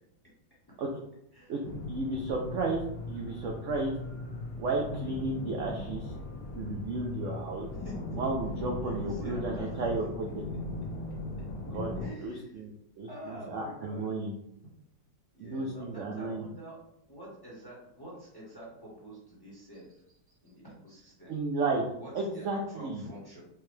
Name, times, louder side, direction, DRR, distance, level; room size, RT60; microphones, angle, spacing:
sound 1, 1.6-12.1, left 2 dB, 85° left, 1.4 m, -39 dB
voice 1, 1.9-4.0 4.6-6.1 6.5-7.7 8.1-10.4 11.7-14.4 15.4-16.5 21.3-21.8 22.1-23.0, right 3 dB, 70° right, 0 dB, 0.7 m, -33 dB
voice 2, 7.8-8.2 8.8-9.8 12.0-12.6 13.1-14.1 15.3-16.8 17.1-21.3 22.0-23.4, equal, 20° left, -6 dB, 0.8 m, -47 dB
4.7 x 2.2 x 3.1 m, 0.79 s
omnidirectional pair, 1.8 m